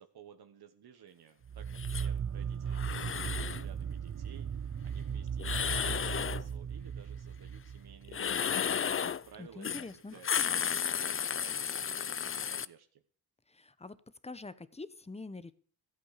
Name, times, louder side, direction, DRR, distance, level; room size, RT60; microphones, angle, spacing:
voice 1, 0.0-8.7 9.0-9.7 10.1-13.0, right 8 dB, 75° right, 7 dB, 1.4 m, -55 dB
sound 1, 1.4-8.8, right 7 dB, 45° right, 0.7 m, -37 dB
sound 2, 1.8-2.1 2.7-3.6 5.4-6.4 8.1-9.2 9.6-9.9 10.1-12.7, left 7 dB, 35° left, 0.5 m, -33 dB
voice 2, 9.4-10.1 13.5-14.0 14.2-15.5, left 3 dB, 15° left, 16 dB, 0.9 m, -45 dB
14.0 x 8.4 x 6.7 m, 0.43 s
cardioid pair, 85°, 39 cm